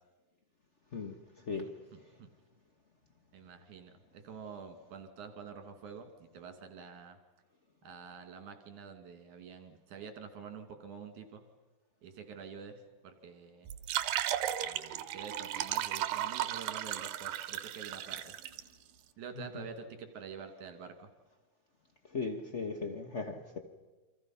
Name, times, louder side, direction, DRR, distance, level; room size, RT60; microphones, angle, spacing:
voice 1, 1.6-2.3 3.3-7.2 7.8-11.4 12.0-13.7 14.6-18.2 19.2-21.1, right 6 dB, 65° right, 6 dB, 3.8 m, -47 dB
sound 1, 13.7-18.6, right 12 dB, 80° right, 2.6 m, -35 dB
voice 2, 22.1-23.6, left 4 dB, 75° left, 5 dB, 0.6 m, -37 dB
29.0 x 25.5 x 5.8 m, 1.2 s
omnidirectional pair, 3.9 m